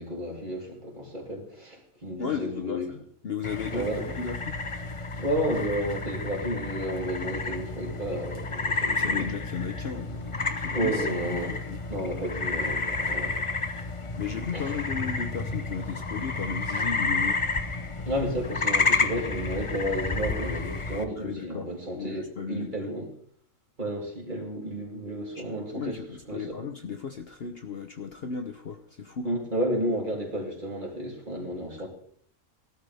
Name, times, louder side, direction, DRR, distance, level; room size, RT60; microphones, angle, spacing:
voice 1, 0.0-2.9 3.7-4.0 5.1-9.3 10.7-11.5 11.9-13.4 14.5-14.8 18.1-23.1 23.8-26.0 26.3-26.6 29.2-31.9, equal, 30° right, -2 dB, 3.8 m, -32 dB
voice 2, 2.2-3.0 3.2-3.9 4.2-4.6 8.9-11.8 14.2-17.4 21.2-22.9 25.3-29.3, left 6 dB, 50° left, 6 dB, 1.0 m, -35 dB
sound 1, 3.4-21.0, left 3 dB, 30° left, 0.7 m, -30 dB
18.0 x 12.5 x 3.5 m, 0.63 s
omnidirectional pair, 1.5 m